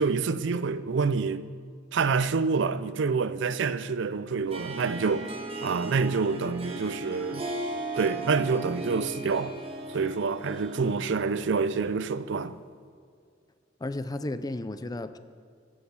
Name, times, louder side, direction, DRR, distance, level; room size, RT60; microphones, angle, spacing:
voice 1, 0.0-1.4 1.9-5.3 5.6-7.4 8.0-9.6 9.9-12.6, right 4 dB, 65° right, 0.5 m, -27 dB
Harp, 4.5-12.2, right 2 dB, 30° right, 1.3 m, -37 dB
voice 2, 13.8-15.2, left 2 dB, 20° left, 0.5 m, -34 dB
14.5 x 6.4 x 6.9 m
head